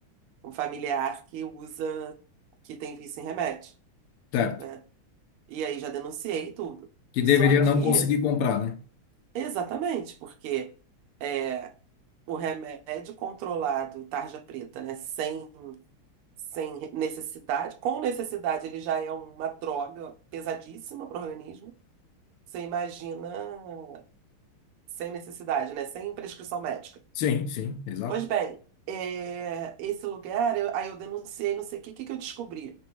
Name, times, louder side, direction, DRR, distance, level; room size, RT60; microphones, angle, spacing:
voice 1, 0.4-2.2 2.6-3.7 4.6-4.8 5.5-6.9 7.4-8.1 9.3-10.7 11.2-11.7 12.3-15.8 16.5-21.7 22.5-24.0 25.0-27.0 28.1-28.6 28.9-32.7, right 8 dB, 85° right, 1.5 m, -32 dB
voice 2, 7.2-8.8 27.2-28.2, left 7 dB, 85° left, 1.5 m, -23 dB
5.2 x 2.2 x 2.9 m
omnidirectional pair, 2.4 m